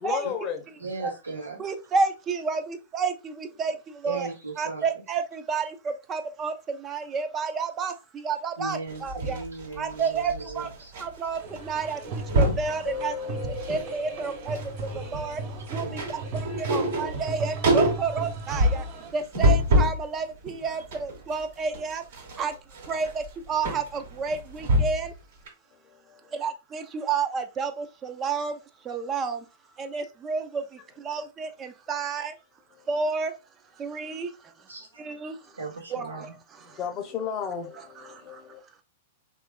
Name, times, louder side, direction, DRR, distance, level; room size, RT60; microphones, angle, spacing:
voice 1, 0.0-0.6 36.7-38.6, left 8 dB, 30° left, 0.7 m, -33 dB
voice 2, 0.8-1.6 4.0-5.0 8.6-10.9 15.8-16.4 34.7-34.9 35.6-36.4, right 4 dB, 80° right, 1.1 m, -37 dB
voice 3, 1.6-3.7 4.0-4.3 4.6-9.4 9.8-10.7 11.0-13.4 13.7-14.6 15.1-15.4 15.7-18.8 19.1-22.0 22.4-22.5 22.9-25.1 26.3-28.6 28.9-29.4 29.8-30.6 31.0-32.3 32.9-33.3 33.8-34.3 35.0-35.4 35.9-36.3 37.8-38.2, right 5 dB, 25° right, 0.4 m, -30 dB
sound 1, 8.9-11.1 11.3-11.6 11.9-12.7 13.2-13.9 14.2-20.0 20.5-25.1 25.5-25.6, equal, 60° right, 1.2 m, -26 dB
sound 2, 11.4-19.1, right 3 dB, 40° right, 1.3 m, -37 dB
sound 3, 12.8-15.5, left 6 dB, 75° left, 0.8 m, -39 dB
3.3 x 2.4 x 2.3 m
figure-of-eight pair, 105°, 0 cm